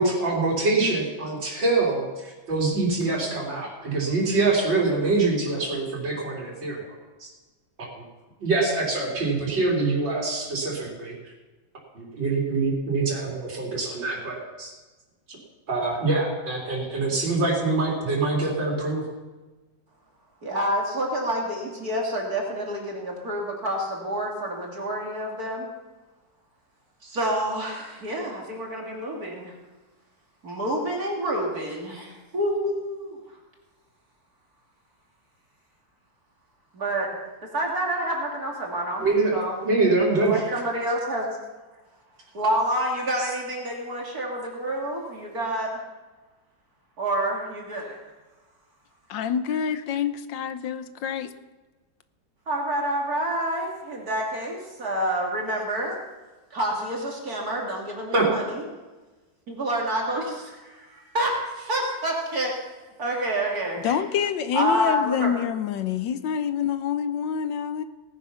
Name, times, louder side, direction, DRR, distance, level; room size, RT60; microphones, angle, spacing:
voice 1, 0.0-6.9 7.2-7.3 8.0-8.1 8.4-11.1 11.9-14.7 15.3-15.4 15.7-19.0 39.0-40.3 58.1-58.3, right 3 dB, 70° right, -3 dB, 4.3 m, -24 dB
voice 2, 20.4-25.7 27.0-29.6 30.4-33.2 36.7-37.1 37.5-39.5 40.2-41.4 42.3-45.8 47.0-48.0 52.5-56.0 56.5-58.6 59.5-62.5 63.0-64.0 64.5-65.4, right 1 dB, 50° right, -1 dB, 2.9 m, -28 dB
voice 3, 49.1-51.3 63.8-67.8, left 8 dB, 75° left, 11 dB, 1.5 m, -27 dB
18.5 x 9.6 x 5.8 m, 1.2 s
omnidirectional pair, 2.1 m